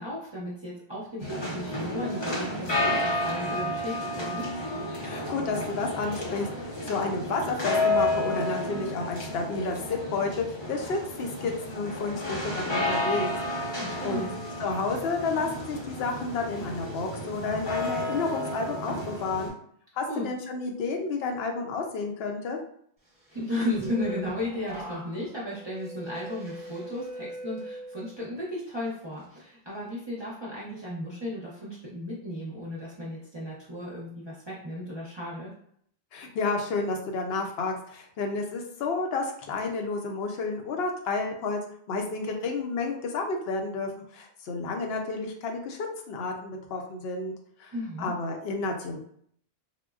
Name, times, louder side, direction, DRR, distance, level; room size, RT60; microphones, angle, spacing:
voice 1, 0.0-4.5 13.8-14.3 20.1-20.3 23.3-35.5 47.7-48.1, left 1 dB, 30° right, -7 dB, 0.6 m, -35 dB
sound 1, 1.2-19.5, left 1 dB, 30° left, 0.6 m, -31 dB
voice 2, 5.0-13.3 13.7-14.3 14.6-19.5 20.0-22.6 36.1-41.6 41.9-45.8 46.1-47.3 47.6-47.7 48.0-49.0, left 3 dB, 70° left, 3 dB, 0.8 m, -31 dB
sound 2, 23.4-28.4 28.8-29.2, equal, 5° right, 0.9 m, -41 dB
3.6 x 2.0 x 2.3 m, 0.65 s
omnidirectional pair, 1.1 m